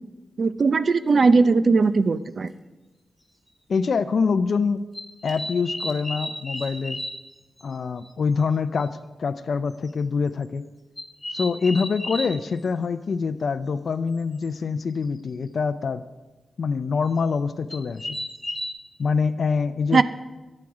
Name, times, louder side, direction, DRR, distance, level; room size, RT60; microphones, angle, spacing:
voice 1, 0.4-2.5 19.9-20.0, right 4 dB, 50° right, 13 dB, 0.6 m, -19 dB
sound 1, 1.0-1.1 2.5-2.6 3.3-3.5 4.9-7.3 7.6-7.7 8.0-8.1 8.4-8.5 8.8-8.9 9.7-9.9 11.0-12.3 14.4-14.5 14.8-15.2 17.1-17.2 17.7-18.7, left 1 dB, 10° left, 2.9 m, -33 dB
voice 2, 3.7-4.9 5.2-7.0 7.6-10.6 11.3-16.0 16.6-18.2 19.0-20.0, left 5 dB, 60° left, 10 dB, 0.4 m, -25 dB
14.0 x 9.8 x 4.9 m, 1.1 s
wide cardioid pair, 105°, 0 cm